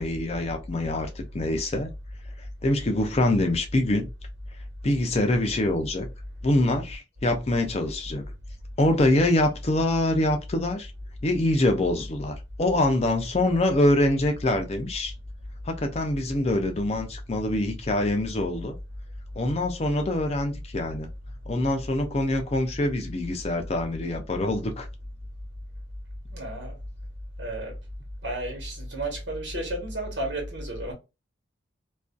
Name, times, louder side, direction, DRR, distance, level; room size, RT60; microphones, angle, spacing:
voice 1, 0.0-1.9 2.6-4.1 4.8-6.1 6.4-8.2 8.8-10.9 11.2-15.1 15.7-18.8 19.4-21.1 21.5-24.9, left 1 dB, 35° left, 0.5 m, -25 dB
voice 2, 26.3-26.8 27.4-27.8 28.2-30.9, right 1 dB, 80° right, 1.3 m, -32 dB
2.5 x 2.3 x 2.3 m
head